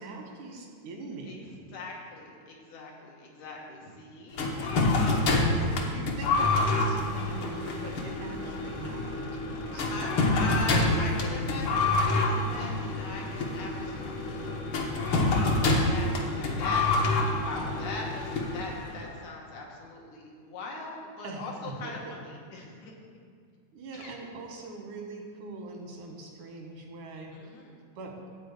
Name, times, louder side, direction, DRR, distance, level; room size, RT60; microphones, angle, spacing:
voice 1, 0.0-1.5 5.9-9.9 21.2-22.1 23.7-27.4 28.0-28.2, right 3 dB, 90° right, 0 dB, 3.0 m, -42 dB
voice 2, 1.2-5.9 9.9-14.6 14.8-22.9 23.9-24.1 27.3-27.8, left 3 dB, 80° left, -1 dB, 2.9 m, -40 dB
sound 1, 4.4-19.1, left 2 dB, 60° left, 1.5 m, -27 dB
12.0 x 4.4 x 8.3 m, 2.1 s
omnidirectional pair, 3.5 m